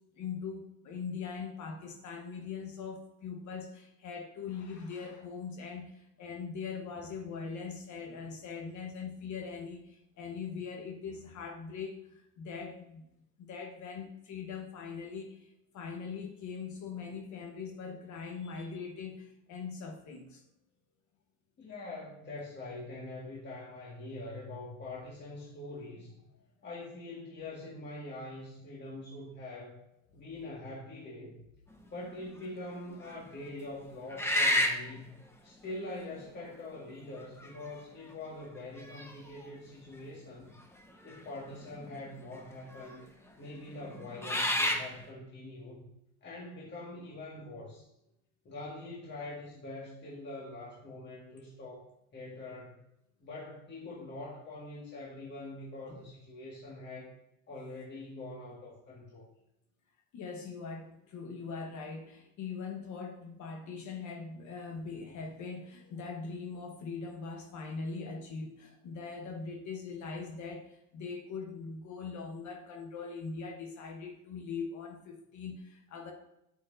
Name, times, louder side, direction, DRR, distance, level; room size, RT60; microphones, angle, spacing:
voice 1, 0.2-13.1 13.4-20.4 55.9-56.0 60.1-76.1, left 5 dB, 55° left, 3 dB, 1.2 m, -41 dB
voice 2, 21.6-26.1 26.6-29.8 30.1-31.4 31.9-35.2 35.4-40.6 41.0-43.1 43.4-45.8 46.2-47.9 48.5-52.8 53.2-57.1 57.5-59.2, left 2 dB, 30° left, -5 dB, 1.9 m, -44 dB
sound 1, 32.0-32.4 33.1-33.2 34.1-34.9 36.1-36.2 37.2-37.7 38.1-38.2 38.8-39.5 41.1-41.2 41.5-42.1 42.8-42.9 43.9-44.9, left 1 dB, 5° left, 1.0 m, -30 dB
8.3 x 8.2 x 2.6 m, 0.83 s
cardioid pair, 115°, 35 cm